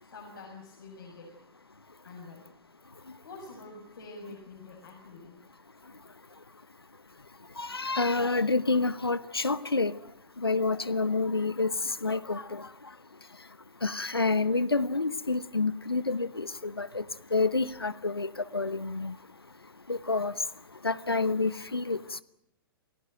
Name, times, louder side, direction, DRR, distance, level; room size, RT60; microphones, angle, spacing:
voice 1, 0.0-1.3 2.0-2.4 3.2-5.4, left 3 dB, 65° left, 0 dB, 6.7 m, -46 dB
voice 2, 7.6-9.9 10.4-11.7 12.0-12.6 13.8-17.0 17.3-19.1 19.9-20.3 20.8-22.2, left 3 dB, 85° left, 17 dB, 1.0 m, -28 dB
29.0 x 16.5 x 9.1 m, 0.78 s
figure-of-eight pair, 115°, 12 cm